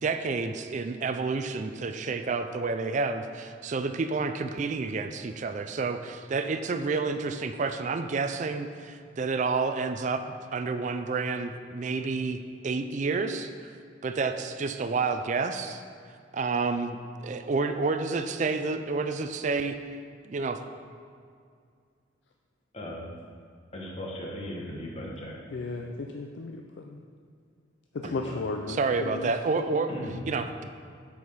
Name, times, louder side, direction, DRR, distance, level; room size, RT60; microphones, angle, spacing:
voice 1, 0.0-10.2 10.5-13.8 14.0-15.8 16.3-19.7 20.2-20.6 28.7-29.9 30.3-30.6, right 4 dB, 40° right, 8 dB, 0.4 m, -29 dB
voice 2, 23.7-25.3 28.0-28.4 29.9-30.2, left 1 dB, 35° left, -2 dB, 1.3 m, -38 dB
voice 3, 25.5-27.0 27.9-29.6, left 3 dB, 70° left, 2 dB, 0.4 m, -35 dB
8.0 x 5.0 x 5.6 m, 2.2 s
head